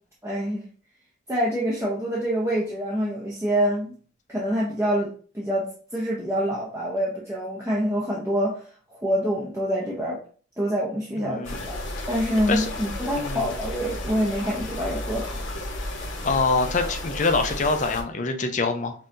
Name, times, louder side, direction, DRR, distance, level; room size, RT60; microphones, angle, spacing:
voice 1, 0.2-0.7 1.3-3.9 4.3-8.6 8.9-10.2 10.6-11.8 12.1-15.4, equal, 15° right, -5 dB, 0.7 m, -26 dB
voice 2, 11.2-11.6 12.5-12.7 13.1-13.5 16.2-18.9, left 3 dB, 35° left, 5 dB, 0.5 m, -25 dB
sound 1, 11.4-18.0, left 1 dB, 70° left, 0.9 m, -33 dB
5.4 x 2.8 x 2.6 m, 0.42 s
head